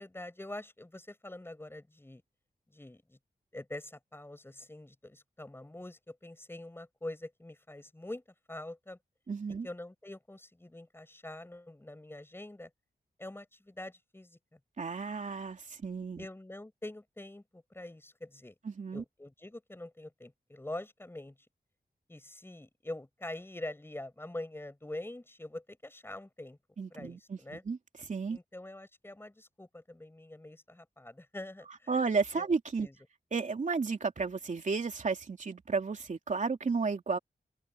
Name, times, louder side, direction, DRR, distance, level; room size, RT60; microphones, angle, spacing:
voice 1, 0.0-2.2 2.7-3.2 3.5-8.2 8.5-9.0 9.6-12.7 13.2-14.6 16.2-18.5 18.9-21.4 22.1-26.6 26.9-27.6 28.3-32.4 32.8-32.9, left 1 dB, 15° left, 7.0 m, -45 dB
voice 2, 9.3-9.7 14.8-16.3 18.6-19.0 26.8-28.4 31.9-32.9 33.3-37.2, right 4 dB, 50° right, 2.9 m, -33 dB
open air
wide cardioid pair, 145°, 17 cm